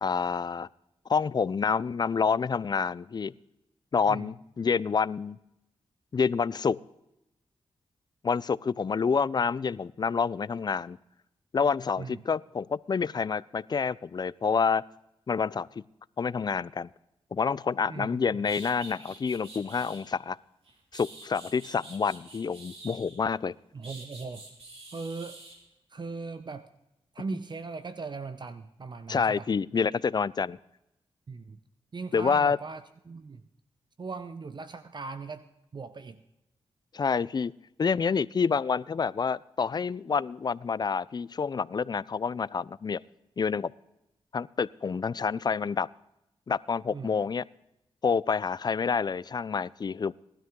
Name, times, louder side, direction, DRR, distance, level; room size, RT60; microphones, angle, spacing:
voice 1, 0.0-0.7 1.1-3.3 3.9-5.4 6.1-6.8 8.2-11.0 11.5-14.8 15.3-15.7 16.2-16.9 17.3-20.4 20.9-23.5 29.1-30.6 32.1-32.6 36.9-37.5 37.8-43.0 43.4-43.7 44.3-45.9 46.5-47.4 48.0-50.1, left 5 dB, 40° left, 21 dB, 0.4 m, -28 dB
voice 2, 17.9-18.5 23.7-24.5 24.9-25.4 25.9-26.7 27.1-29.5 31.3-31.6 31.9-33.4 34.0-36.2 46.9-47.2, right 4 dB, 45° right, 11 dB, 0.8 m, -39 dB
sound 1, 18.0-18.1 18.4-20.1 20.6-23.3 23.8-25.6, right 2 dB, 70° right, 4.3 m, -47 dB
18.5 x 12.5 x 3.8 m, 0.87 s
cardioid pair, 65°, 10 cm